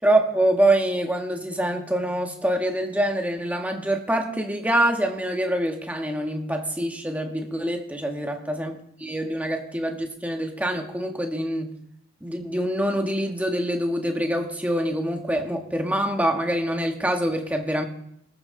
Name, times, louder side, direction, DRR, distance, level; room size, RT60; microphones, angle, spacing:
voice 1, 0.0-11.7 12.2-17.8, right 1 dB, 5° right, 3 dB, 1.4 m, -25 dB
19.5 x 13.5 x 3.8 m, 0.76 s
head